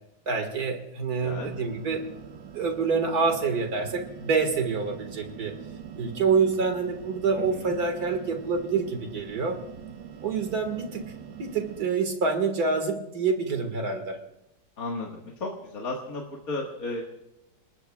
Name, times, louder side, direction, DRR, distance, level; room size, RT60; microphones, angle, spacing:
voice 1, 0.3-2.1 2.5-5.6 6.0-9.6 10.2-11.1 11.4-14.2, right 5 dB, 55° right, 6 dB, 2.3 m, -27 dB
voice 2, 1.2-1.5 7.5-7.8 14.8-15.1 15.4-17.0, left 2 dB, 50° left, -1 dB, 2.1 m, -33 dB
sound 1, 1.4-11.9, right 7 dB, 90° right, 1.8 m, -43 dB
29.5 x 19.5 x 2.4 m, 0.87 s
omnidirectional pair, 2.0 m